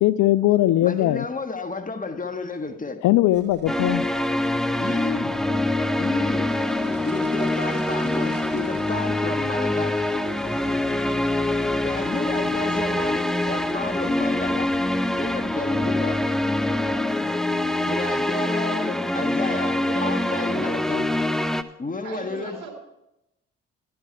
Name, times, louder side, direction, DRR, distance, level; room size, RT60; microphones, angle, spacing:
voice 1, 0.0-1.2 3.0-4.0, left 14 dB, 65° left, 17 dB, 0.6 m, -19 dB
voice 2, 0.8-3.0 4.8-5.4 6.0-6.6 7.0-10.0 11.8-14.7 15.2-16.2 17.9-21.1 21.8-22.6, left 3 dB, 25° left, 7 dB, 1.5 m, -31 dB
sound 1, 3.3-17.0, right 3 dB, 35° right, 5.1 m, -44 dB
sound 2, 3.7-21.6, left 1 dB, ahead, 0.9 m, -24 dB
voice 3, 19.4-20.8 22.0-22.7, right 3 dB, 65° right, 0 dB, 3.8 m, -36 dB
12.5 x 12.0 x 4.6 m, 0.87 s
hypercardioid pair, 45°, 33 cm